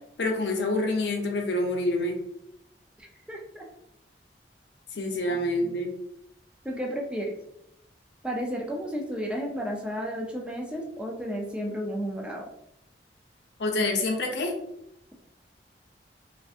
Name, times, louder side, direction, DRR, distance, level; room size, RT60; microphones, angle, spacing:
voice 1, 0.2-2.2 5.0-5.9 13.6-14.5, left 2 dB, 75° left, 2 dB, 0.5 m, -27 dB
voice 2, 3.0-3.7 5.3-5.7 6.6-7.3 8.2-12.5, equal, 5° right, 0 dB, 0.3 m, -33 dB
2.6 x 2.4 x 2.4 m, 0.80 s
head